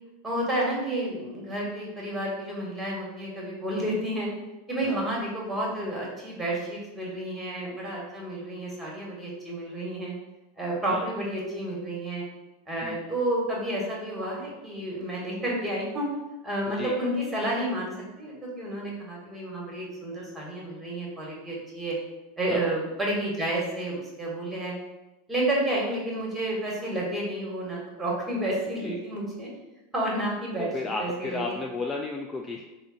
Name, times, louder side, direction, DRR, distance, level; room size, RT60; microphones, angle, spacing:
voice 1, 0.2-4.3 4.7-10.1 10.6-12.2 12.7-16.1 16.4-17.9 18.2-21.9 22.4-24.7 25.3-29.5 29.9-30.7 31.0-31.5, right 1 dB, 10° right, -4 dB, 1.3 m, -30 dB
voice 2, 4.8-5.1 10.9-11.1 12.8-13.0 16.7-17.0 22.5-22.7 28.8-29.0 30.6-32.6, left 3 dB, 20° left, 1 dB, 0.3 m, -33 dB
3.7 x 2.1 x 3.8 m, 1.0 s
hypercardioid pair, 110°, 0 cm